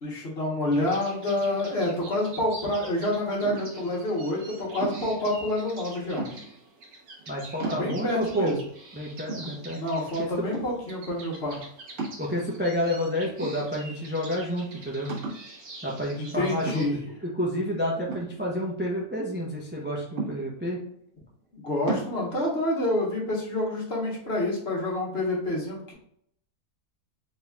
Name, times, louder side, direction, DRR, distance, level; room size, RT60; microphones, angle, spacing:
voice 1, 0.0-6.3 7.6-8.6 9.7-11.6 16.2-17.0 21.6-25.9, left 1 dB, 45° left, -3 dB, 1.4 m, -28 dB
sound 1, 0.7-16.9, right 2 dB, 80° right, 1.5 m, -46 dB
sound 2, 3.4-3.9 4.8-5.2 6.2-6.7 7.2-7.3 7.6-8.2 8.8-8.9 9.3-10.0 10.5-10.9 12.0-12.7 13.4-14.1 14.4-14.5 15.1-15.5 16.7-17.1 18.1-19.0 20.2-20.8 21.9-22.1, right 3 dB, 60° right, 1.7 m, -35 dB
voice 2, 7.3-8.5 8.9-9.8 12.2-15.1 15.8-16.8 17.2-20.8, equal, 15° right, -3 dB, 0.4 m, -29 dB
4.0 x 4.0 x 2.3 m, 0.69 s
omnidirectional pair, 1.5 m